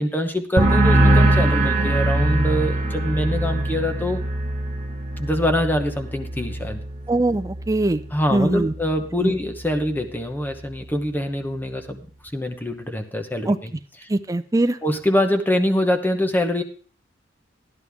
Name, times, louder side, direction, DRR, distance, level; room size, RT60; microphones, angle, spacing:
voice 1, 0.0-4.2 5.2-6.8 8.1-12.1 12.3-13.7 14.8-16.6, left 1 dB, 10° left, 4 dB, 1.0 m, -24 dB
sound 1, 0.6-8.0 8.3-8.8, right 1 dB, 40° right, 2.1 m, -22 dB
voice 2, 7.1-8.0 8.3-8.7 9.2-9.4 13.5-13.6 14.1-14.8, right 2 dB, 20° right, 10 dB, 0.5 m, -21 dB
13.0 x 11.0 x 3.5 m, 0.43 s
head